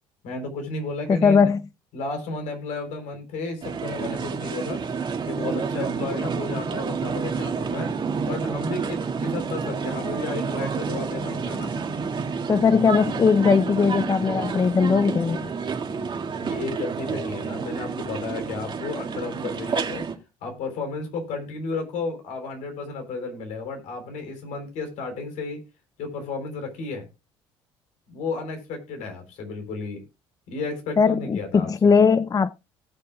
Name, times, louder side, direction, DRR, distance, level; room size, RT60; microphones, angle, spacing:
voice 1, 0.2-1.5 1.9-4.8 5.2-7.9 8.2-11.7 16.4-20.1 20.4-25.6 26.0-27.1 28.1-30.0 30.5-31.9, left 3 dB, 70° left, 3.7 m, -33 dB
voice 2, 1.1-1.6 12.5-15.5 31.0-32.5, left 5 dB, 30° left, 0.5 m, -19 dB
sound 1, 3.6-20.1, right 5 dB, 40° right, 2.1 m, -29 dB
18.0 x 6.8 x 2.4 m
supercardioid pair, 70°, 13 cm